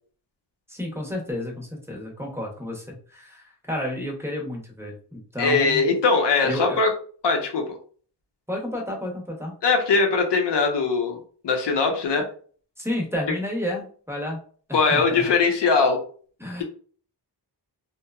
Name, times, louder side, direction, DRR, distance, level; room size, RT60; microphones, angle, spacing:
voice 1, 0.7-5.9 6.4-6.8 8.5-9.5 12.8-14.4 14.7-15.3 16.4-16.6, left 1 dB, 5° right, 0 dB, 0.7 m, -31 dB
voice 2, 5.4-6.9 7.2-7.8 9.6-11.2 11.4-12.3 14.7-16.0, left 4 dB, 90° left, 3 dB, 0.7 m, -21 dB
2.9 x 2.1 x 2.3 m, 0.43 s
wide cardioid pair, 115°, 41 cm